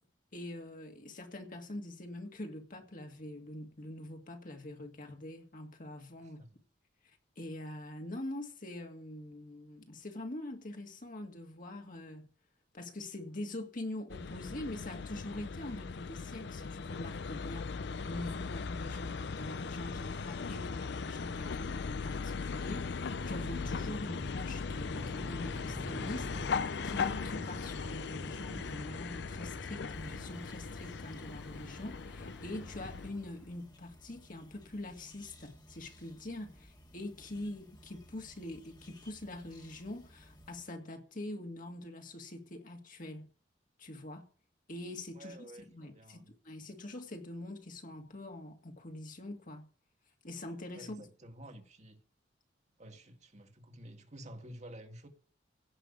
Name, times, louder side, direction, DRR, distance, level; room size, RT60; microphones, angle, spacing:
voice 1, 0.3-6.4 7.0-12.3 12.7-43.3 43.8-44.2 44.7-45.4 45.6-49.7 50.2-51.1, left 1 dB, 50° left, 2.1 m, -44 dB
voice 2, 6.2-6.6 45.1-46.3 50.7-52.0 52.8-55.1, right 1 dB, 40° right, 1.8 m, -51 dB
sound 1, 14.1-33.1, left 5 dB, 65° left, 0.5 m, -39 dB
Motorcycle, 23.0-33.7, equal, 5° right, 0.8 m, -48 dB
sound 2, 29.9-40.6, equal, 25° left, 1.7 m, -58 dB
16.5 x 5.6 x 8.5 m
head